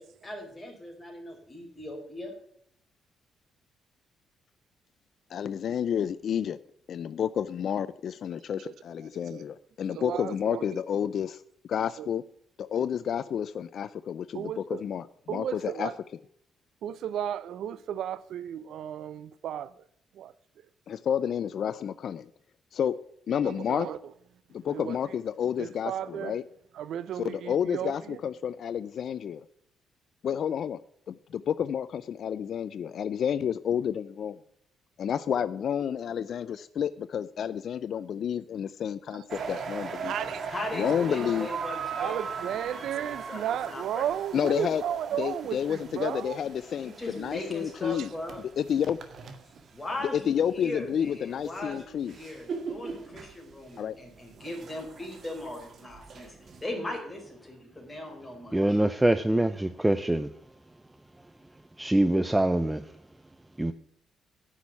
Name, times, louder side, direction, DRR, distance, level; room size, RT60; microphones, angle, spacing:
voice 1, 0.0-2.3 40.5-44.0 46.8-48.4 49.7-56.3 56.6-58.8, left 1 dB, 15° left, 4.5 m, -39 dB
voice 2, 5.3-6.6 6.9-11.4 11.7-12.2 12.6-15.9 20.9-22.3 22.7-23.0 23.3-23.9 24.5-26.4 27.2-29.4 30.2-30.8 31.1-34.4 35.0-40.1 40.7-41.5 44.3-44.8 45.2-48.1 48.6-49.0 50.1-52.1 53.8-54.0, left 8 dB, 60° left, 0.4 m, -30 dB
voice 3, 9.9-10.8 12.0-12.1 14.3-14.8 15.3-15.9 16.8-19.7 20.2-20.3 23.4-24.0 24.7-25.0 25.6-26.4 26.8-28.2 39.1-39.2 39.6-39.7 40.0-40.4 42.0-46.4 47.8-48.1, right 10 dB, 75° right, 0.5 m, -34 dB
sound 1, 39.3-50.3 50.8-56.6, right 5 dB, 55° right, 1.8 m, -40 dB
voice 4, 58.5-60.3 61.8-63.0 63.6-63.7, right 1 dB, 10° right, 0.6 m, -24 dB
9.9 x 6.2 x 8.4 m
cardioid pair, 90°, 0 cm